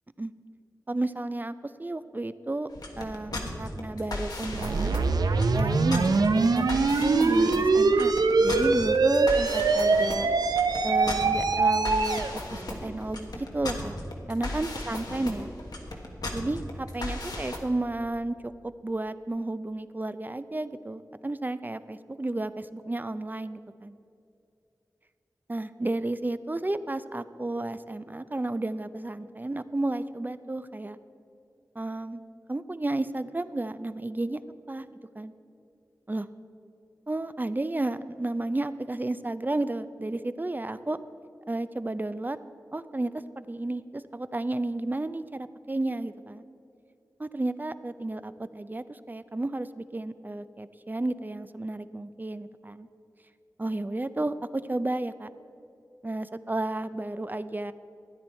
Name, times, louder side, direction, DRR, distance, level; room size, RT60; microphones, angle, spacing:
voice 1, 0.9-1.5 1.8-2.7 3.0-4.9 5.5-8.1 8.4-10.3 10.8-12.2 12.5-14.0 14.3-15.5 16.3-23.9 25.5-31.0 31.8-32.2 32.5-34.4 34.7-34.9 35.2-35.3 36.1-36.3 37.1-41.0 41.5-42.4 42.7-46.4 47.2-52.9 53.6-55.3 56.0-57.7, right 2 dB, 30° right, 13 dB, 0.5 m, -32 dB
sound 1, 2.7-17.6, left 2 dB, 85° left, 1.3 m, -36 dB
sound 2, 4.5-12.3, right 3 dB, 90° right, 0.5 m, -23 dB
13.5 x 9.5 x 4.4 m, 2.7 s
cardioid pair, 40°, 7 cm